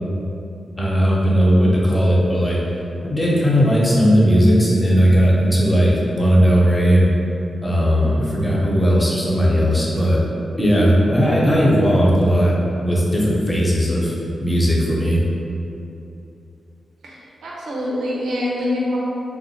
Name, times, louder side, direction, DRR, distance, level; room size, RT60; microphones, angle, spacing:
voice 1, 0.8-2.6 3.0-7.1 7.6-10.2 10.6-12.5 12.8-14.1 14.4-15.2, equal, 15° left, -5 dB, 0.9 m, -16 dB
voice 2, 17.0-19.0, left 1 dB, 90° right, -5 dB, 0.7 m, -25 dB
3.6 x 2.5 x 4.3 m, 2.8 s
cardioid pair, 90°, 0 cm